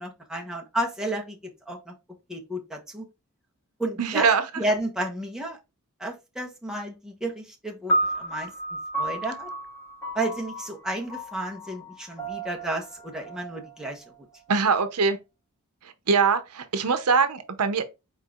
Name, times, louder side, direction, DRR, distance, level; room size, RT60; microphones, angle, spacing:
voice 1, 0.0-1.4 1.7-1.9 2.3-3.1 3.8-4.3 4.6-5.6 6.0-8.5 9.0-9.5 10.1-14.0, right 1 dB, 5° right, 1.0 m, -32 dB
voice 2, 4.0-4.6 14.5-15.2 16.1-17.8, right 5 dB, 80° right, 0.7 m, -22 dB
sound 1, 7.9-14.3, right 1 dB, 15° left, 3.1 m, -32 dB
4.5 x 4.4 x 2.4 m
head